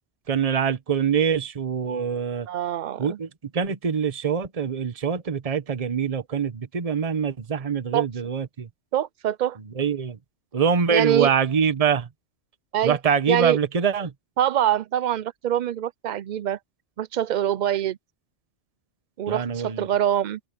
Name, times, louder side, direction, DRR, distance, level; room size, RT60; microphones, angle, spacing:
voice 1, 0.3-2.5 3.0-3.3 3.5-8.7 9.7-10.2 10.5-12.1 12.8-14.1 19.3-19.9, right 6 dB, 35° right, 1.0 m, -24 dB
voice 2, 2.5-3.2 7.9-8.1 8.9-9.6 10.9-11.3 12.7-13.0 13.3-13.6 14.4-16.6 17.0-18.0 19.2-20.4, right 11 dB, 50° right, 0.5 m, -24 dB
omnidirectional pair, 1.2 m